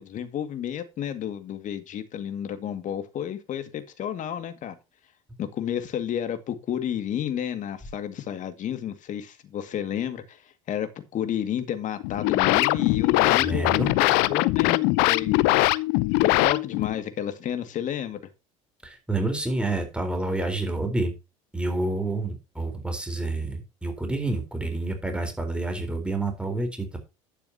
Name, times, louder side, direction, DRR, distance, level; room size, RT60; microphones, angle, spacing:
voice 1, 0.0-4.8 5.4-14.8 15.1-15.4 16.2-18.2, left 10 dB, 50° left, 2.1 m, -31 dB
sound 1, 12.0-17.0, left 20 dB, 65° left, 0.6 m, -22 dB
voice 2, 13.4-13.9 18.8-21.1 21.5-27.0, right 2 dB, 5° right, 4.0 m, -28 dB
11.0 x 9.1 x 2.8 m
hypercardioid pair, 75°, 17 cm